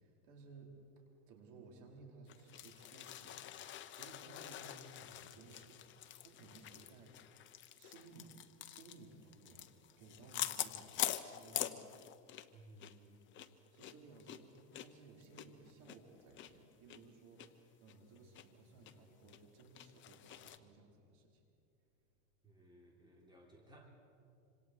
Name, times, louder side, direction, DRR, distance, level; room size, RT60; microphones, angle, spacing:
voice 1, 0.0-3.7 4.0-5.9 6.2-7.4 7.7-9.7 10.0-11.9 13.7-21.4, right 3 dB, 55° right, 0 dB, 4.9 m, -59 dB
sound 1, 2.3-12.5 12.8-12.9 13.3-16.5 16.9-17.0 17.4-17.5 17.9-18.4 18.9-19.0 19.3-20.6, left 12 dB, 30° left, 0.9 m, -45 dB
voice 2, 12.5-13.2 22.4-23.9, right 1 dB, 10° right, -1 dB, 3.9 m, -60 dB
26.5 x 26.0 x 4.8 m, 2.5 s
supercardioid pair, 135°, 40 cm